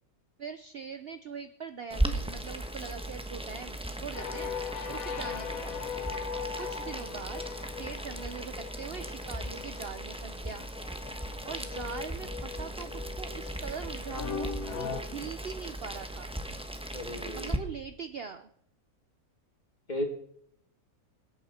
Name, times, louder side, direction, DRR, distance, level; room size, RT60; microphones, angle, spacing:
voice 1, 0.4-5.8 6.6-7.4 7.7-10.6 11.4-16.3 17.3-18.5, right 6 dB, 50° right, 9 dB, 0.8 m, -42 dB
Boiling, 1.9-17.6, right 1 dB, 5° right, 1.0 m, -37 dB
sound 1, 4.1-15.0, left 7 dB, 70° left, 1.4 m, -40 dB
voice 2, 16.9-17.6 19.9-20.0, equal, 30° left, 3 dB, 2.5 m, -35 dB
26.5 x 8.9 x 4.3 m, 0.70 s
omnidirectional pair, 1.6 m